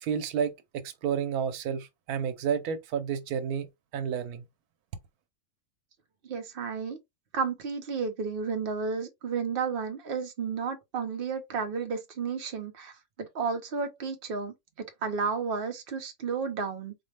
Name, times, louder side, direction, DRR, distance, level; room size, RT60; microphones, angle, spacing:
voice 1, 0.0-3.7 3.9-4.5, right 7 dB, 85° right, 1.2 m, -31 dB
voice 2, 6.2-7.0 7.3-12.9 13.2-14.5 15.0-16.9, right 5 dB, 45° right, 0.8 m, -32 dB
4.3 x 2.1 x 3.2 m
omnidirectional pair, 1.5 m